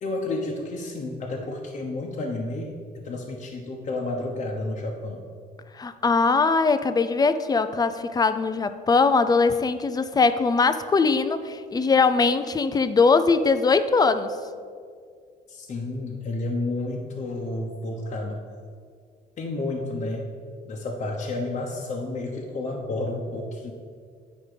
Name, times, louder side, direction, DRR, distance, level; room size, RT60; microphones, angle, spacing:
voice 1, 0.0-5.3 15.5-18.4 19.4-20.3 20.6-23.7, left 2 dB, 45° left, -2 dB, 0.9 m, -31 dB
voice 2, 5.7-14.4, left 4 dB, 25° left, 11 dB, 0.4 m, -21 dB
8.9 x 5.2 x 5.0 m, 2.1 s
cardioid pair, 110°, 17 cm